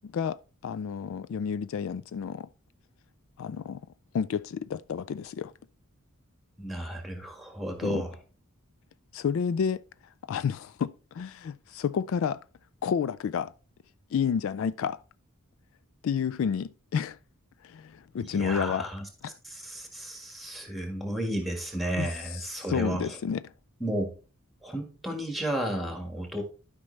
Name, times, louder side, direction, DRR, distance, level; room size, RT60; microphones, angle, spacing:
voice 1, 0.6-2.5 3.4-3.8 4.1-5.5 7.8-8.0 9.1-9.8 10.3-12.4 12.8-13.5 14.1-15.0 16.0-17.2 17.6-18.9 19.2-19.4 22.0-23.4, left 7 dB, 65° left, 0.3 m, -30 dB
voice 2, 6.6-8.1 18.2-19.0 19.4-23.1 23.8-24.1 24.6-26.4, right 1 dB, ahead, 1.6 m, -33 dB
12.0 x 5.2 x 3.2 m
head